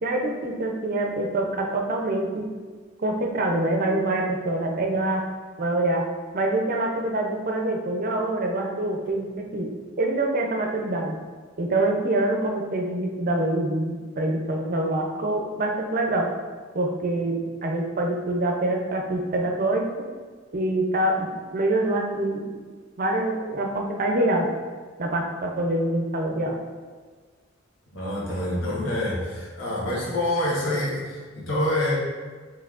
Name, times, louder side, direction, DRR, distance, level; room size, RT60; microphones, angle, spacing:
voice 1, 0.0-2.5 3.0-5.2 5.6-6.0 6.3-9.7 10.0-11.2 11.6-16.3 16.7-19.9 20.5-22.5 23.0-24.5 25.0-26.6, right 2 dB, 45° right, 1 dB, 0.6 m, -25 dB
voice 2, 27.9-31.9, left 1 dB, 85° left, -6 dB, 1.3 m, -26 dB
5.5 x 3.3 x 2.4 m, 1.5 s
head